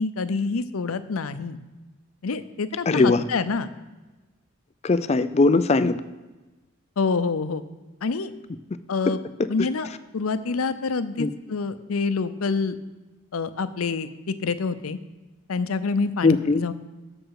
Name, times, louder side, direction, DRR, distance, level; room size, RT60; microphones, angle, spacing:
voice 1, 0.0-1.6 2.2-3.7 7.0-7.6 8.0-8.3 8.9-9.2 9.5-12.8 13.3-15.0 15.5-16.7, left 4 dB, 90° left, 12 dB, 0.6 m, -27 dB
voice 2, 2.9-3.2 4.8-6.0 11.2-11.3 16.2-16.6, left 3 dB, 30° left, 13 dB, 0.4 m, -19 dB
13.0 x 6.2 x 4.8 m, 1.2 s
head